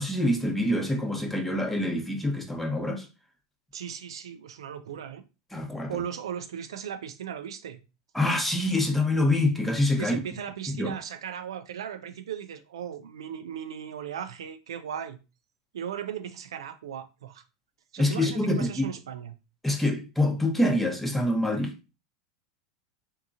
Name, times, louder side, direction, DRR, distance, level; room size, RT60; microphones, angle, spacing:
voice 1, 0.0-3.1 5.5-6.0 8.1-10.1 10.7-11.0 18.0-18.9 19.6-21.7, left 1 dB, 5° left, 0.8 m, -26 dB
voice 2, 3.7-5.2 5.9-7.8 10.0-15.2 15.7-17.4 17.9-19.3, right 9 dB, 85° right, 0.4 m, -37 dB
3.6 x 2.8 x 2.5 m
hypercardioid pair, 100°, 3 cm